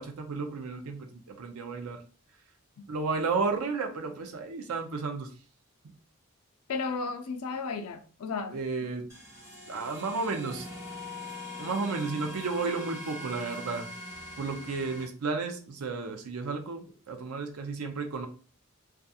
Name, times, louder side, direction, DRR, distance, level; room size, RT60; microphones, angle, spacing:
voice 1, 0.0-2.0 2.9-5.3 8.5-9.1 9.7-10.7 11.6-13.9 14.4-18.3, right 4 dB, 90° right, 0.5 m, -33 dB
voice 2, 6.7-8.6, left 4 dB, 90° left, 0.4 m, -34 dB
sound 1, 9.1-15.0, left 1 dB, 10° right, 0.7 m, -42 dB
2.3 x 2.3 x 2.7 m
head